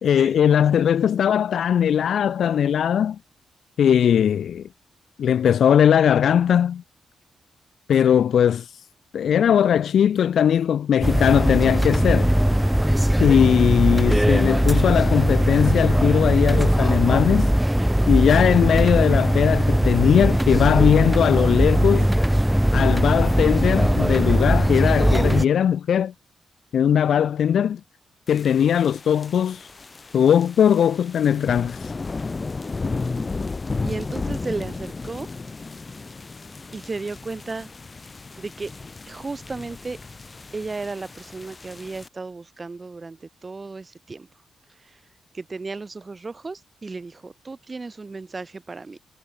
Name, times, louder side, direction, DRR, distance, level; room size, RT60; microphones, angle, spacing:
voice 1, 0.0-3.2 3.8-4.6 5.2-6.8 7.9-8.9 9.1-12.3 13.2-17.5 18.1-22.1 22.7-26.1 26.7-27.8 28.3-29.7 30.1-31.9, left 9 dB, 75° left, 0.6 m, -19 dB
sound 1, 11.0-25.4, equal, 5° right, 0.4 m, -19 dB
sound 2, 28.3-42.1, left 3 dB, 35° left, 1.6 m, -34 dB
voice 2, 33.8-35.3 36.7-37.7 38.4-38.7 39.1-40.0 40.5-44.3 44.8-45.0 45.3-49.0, right 3 dB, 35° right, 1.2 m, -34 dB
cardioid pair, 65°, 0 cm